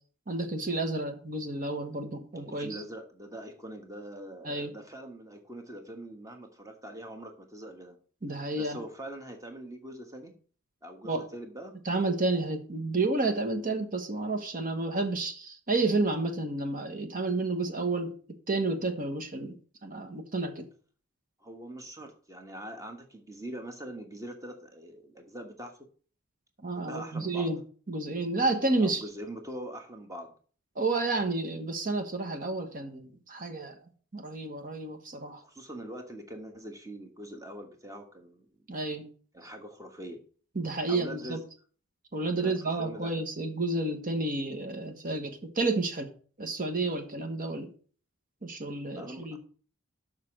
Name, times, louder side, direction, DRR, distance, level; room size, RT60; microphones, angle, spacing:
voice 1, 0.3-2.8 4.4-4.7 8.2-8.8 11.0-11.3 11.8-18.1 18.5-19.6 19.8-20.7 26.6-27.6 27.9-29.0 30.8-33.7 34.1-35.4 38.7-39.1 40.5-41.4 42.1-46.1 46.4-47.7 48.4-49.4, right 2 dB, 40° right, 6 dB, 1.2 m, -30 dB
voice 2, 2.5-8.0 8.6-10.3 10.8-11.7 21.4-25.8 26.7-27.5 28.8-30.3 35.4-38.7 39.3-40.2 40.9-41.4 42.4-43.1 48.9-49.4, right 1 dB, 15° right, 5 dB, 1.3 m, -43 dB
6.7 x 6.1 x 6.4 m, 0.43 s
head